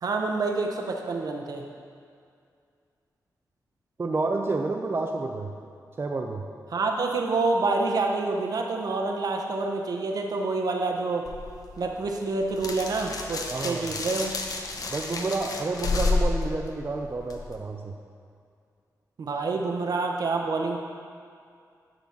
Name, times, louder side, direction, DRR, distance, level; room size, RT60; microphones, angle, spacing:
voice 1, 0.0-1.7 6.7-11.3 11.8-14.3 19.2-20.8, right 3 dB, 65° right, 2 dB, 0.9 m, -27 dB
voice 2, 4.0-5.5 6.0-6.4 13.5-13.9 14.9-17.9, right 3 dB, 35° right, 2 dB, 0.5 m, -29 dB
sound 1, 11.3-17.6, left 3 dB, 60° left, 0.8 m, -31 dB
10.5 x 4.0 x 5.9 m, 2.3 s
wide cardioid pair, 100°, 7 cm